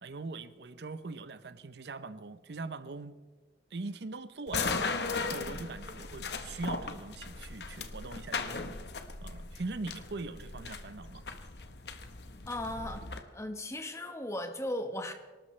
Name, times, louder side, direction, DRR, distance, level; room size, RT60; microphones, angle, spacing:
voice 1, 0.0-3.1 3.7-4.8 5.2-11.2, right 3 dB, 70° right, 13 dB, 0.7 m, -41 dB
sound 1, 4.5-13.2, left 4 dB, 70° left, 1.1 m, -37 dB
voice 2, 12.5-15.1, left 1 dB, 15° left, 6 dB, 1.2 m, -37 dB
24.5 x 13.0 x 3.3 m, 1.3 s
head